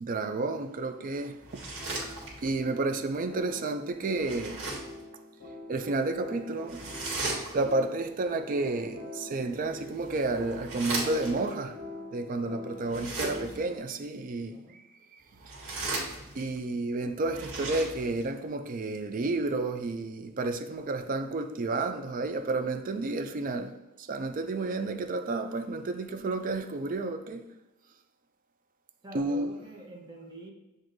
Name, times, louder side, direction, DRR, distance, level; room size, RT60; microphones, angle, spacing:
voice 1, 0.0-1.4 2.4-4.7 5.7-7.1 7.5-11.8 12.1-14.6 16.3-27.4 29.1-29.5, right 2 dB, 40° right, 0.4 m, -31 dB
sound 1, 1.4-2.6 4.1-5.0 6.7-7.8 9.6-11.5 12.8-13.7 15.3-16.6 17.2-18.3, right 2 dB, 65° right, 1.5 m, -37 dB
sound 2, 1.5-13.8, left 1 dB, 55° left, 1.0 m, -45 dB
voice 2, 14.5-14.8 29.0-30.5, right 2 dB, 20° right, 0.9 m, -45 dB
7.5 x 2.6 x 2.6 m
head